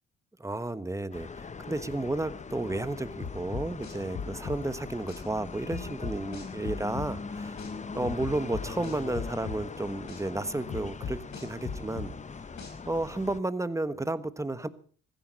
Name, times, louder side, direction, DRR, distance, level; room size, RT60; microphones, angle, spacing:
voice 1, 0.4-7.6 7.9-12.1 12.9-14.7, right 2 dB, 10° right, 13 dB, 1.2 m, -32 dB
sound 1, 1.1-13.4, left 5 dB, 25° left, 0.7 m, -41 dB
sound 2, 3.2-5.2 5.7-7.7 8.0-10.2 10.7-13.0, left 5 dB, 65° left, 4.7 m, -37 dB
15.5 x 14.5 x 5.2 m, 0.42 s
cardioid pair, 90°, 30 cm